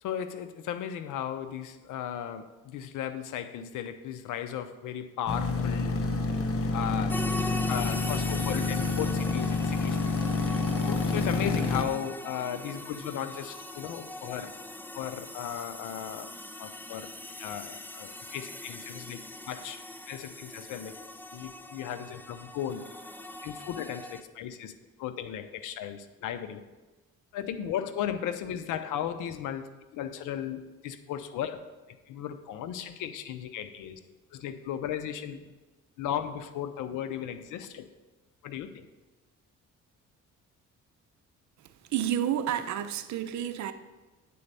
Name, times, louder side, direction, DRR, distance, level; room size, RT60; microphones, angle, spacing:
voice 1, 0.0-6.0 6.7-7.2 7.5-10.0 10.8-14.6 14.9-16.3 16.6-17.1 17.4-19.8 20.1-20.9 21.3-22.9 23.4-24.7 25.0-26.6 27.3-31.7 32.1-34.0 34.3-35.5 36.0-37.9 38.4-38.9, left 9 dB, 90° left, 10 dB, 0.7 m, -36 dB
sound 1, 5.3-11.8, left 3 dB, 50° left, 0.9 m, -28 dB
sound 2, 7.1-24.2, left 1 dB, 5° left, 0.4 m, -41 dB
voice 2, 41.9-43.7, right 10 dB, 70° right, 10 dB, 0.7 m, -30 dB
8.5 x 4.2 x 6.7 m, 1.2 s
cardioid pair, 90°, 30 cm